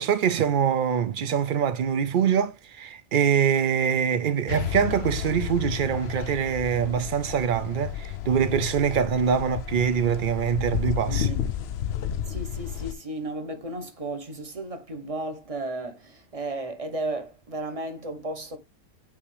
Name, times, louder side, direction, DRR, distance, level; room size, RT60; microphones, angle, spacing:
voice 1, 0.0-11.3, right 7 dB, 85° right, 0.4 m, -24 dB
sound 1, 4.5-12.9, left 10 dB, 65° left, 0.7 m, -32 dB
voice 2, 11.1-11.4 12.2-18.6, right 2 dB, 25° right, 1.0 m, -34 dB
8.4 x 3.5 x 3.2 m
omnidirectional pair, 1.5 m